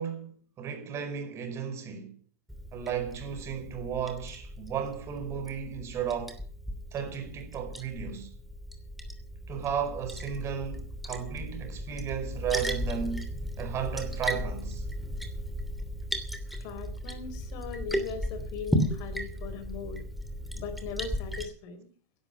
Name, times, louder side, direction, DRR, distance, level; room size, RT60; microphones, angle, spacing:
voice 1, 0.0-2.1 2.7-6.4 6.9-8.3 9.5-13.3 13.6-14.8, right 8 dB, 35° right, 4.8 m, -34 dB
Liquid, 2.5-21.4, equal, ahead, 2.9 m, -36 dB
voice 2, 16.5-20.0 20.5-21.9, left 6 dB, 55° left, 3.8 m, -39 dB
15.5 x 11.5 x 5.6 m
hypercardioid pair, 100°, 8 cm